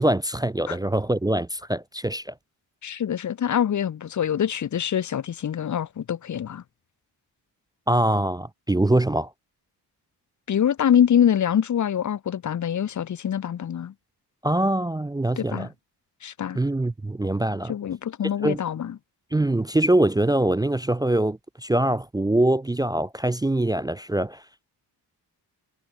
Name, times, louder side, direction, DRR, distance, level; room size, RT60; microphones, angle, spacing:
voice 1, 0.0-2.3 7.9-9.3 14.4-15.7 16.5-17.7 18.4-18.6 19.3-24.4, right 1 dB, 10° right, 0.4 m, -23 dB
voice 2, 2.8-6.6 10.5-13.9 15.4-15.7 16.2-16.6 17.7-18.9, left 9 dB, 45° left, 0.9 m, -24 dB
wide cardioid pair, 120°, 41 cm